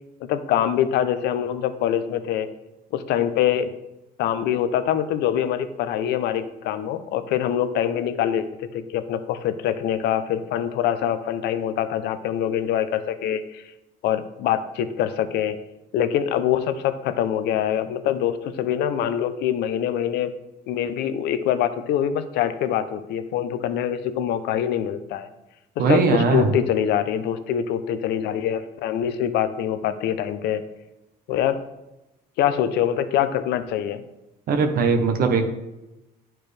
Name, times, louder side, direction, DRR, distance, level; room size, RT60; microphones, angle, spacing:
voice 1, 0.3-2.5 2.9-3.7 4.2-13.6 14.0-15.6 15.9-20.3 20.7-25.3 25.8-30.6 31.3-31.6 32.4-34.0, left 10 dB, 80° left, 11 dB, 0.6 m, -24 dB
voice 2, 25.8-26.5 34.5-35.5, right 4 dB, 60° right, 5 dB, 1.0 m, -19 dB
9.9 x 4.5 x 3.3 m, 0.95 s
cardioid pair, 110°, 17 cm